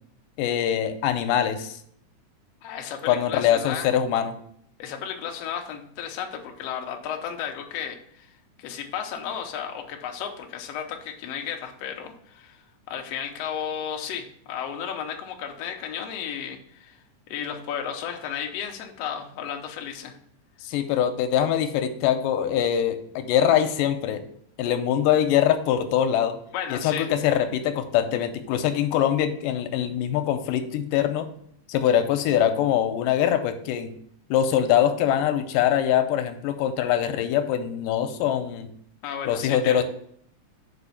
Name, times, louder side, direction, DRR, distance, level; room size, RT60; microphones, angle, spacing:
voice 1, 0.4-1.8 3.1-4.4 20.6-24.2 24.6-26.3 26.7-31.3 31.7-33.9 34.3-38.7 39.3-39.8, left 10 dB, 90° left, 9 dB, 2.3 m, -23 dB
voice 2, 2.6-3.9 4.8-8.3 8.6-17.0 17.3-20.2 26.5-27.1 39.0-39.8, left 8 dB, 70° left, 3 dB, 1.5 m, -33 dB
5.1 x 4.9 x 5.6 m, 0.66 s
omnidirectional pair, 3.7 m